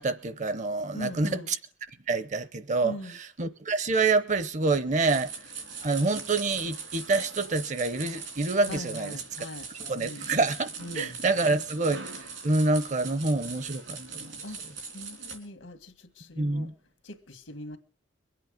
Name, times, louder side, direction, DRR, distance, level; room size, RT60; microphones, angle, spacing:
voice 1, 0.0-1.3 2.1-2.9 3.4-5.3 5.8-9.2 9.8-12.0 12.4-14.3 16.4-16.7, right 3 dB, 40° right, 0.8 m, -27 dB
voice 2, 0.9-1.5 2.8-3.2 8.7-9.7 10.0-10.3 10.8-11.1 14.4-14.6 14.9-16.7 17.0-17.8, left 1 dB, 85° left, 1.8 m, -40 dB
sound 1, 5.1-15.4, right 5 dB, 80° right, 3.7 m, -41 dB
22.5 x 8.7 x 5.2 m
head